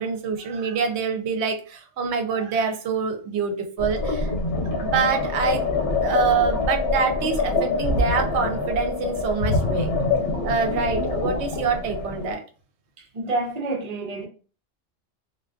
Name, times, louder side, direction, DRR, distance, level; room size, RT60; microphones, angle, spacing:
voice 1, 0.0-4.3 4.8-5.6 6.0-9.9 10.4-12.4, right 5 dB, 70° right, 0.8 m, -25 dB
sound 1, 3.8-12.3, left 3 dB, 60° left, 0.9 m, -25 dB
voice 2, 13.0-14.3, right 2 dB, 45° right, 0.6 m, -28 dB
2.4 x 2.2 x 2.3 m
omnidirectional pair, 1.2 m